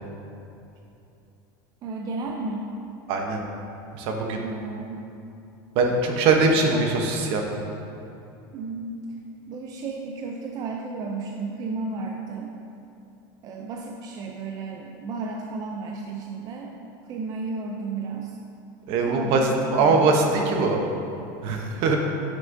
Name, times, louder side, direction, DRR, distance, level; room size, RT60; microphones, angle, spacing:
voice 1, 1.8-2.7 4.4-5.0 6.4-6.9 8.5-9.0 9.5-12.5 13.4-16.8 17.1-18.4 19.0-20.0, right 3 dB, 35° right, 0 dB, 0.5 m, -33 dB
voice 2, 3.1-3.4 3.9-4.4 5.7-7.7 18.9-20.8 21.4-22.0, right 3 dB, 55° right, 2 dB, 0.9 m, -22 dB
9.2 x 6.3 x 2.7 m, 2.8 s
supercardioid pair, 140°, 11 cm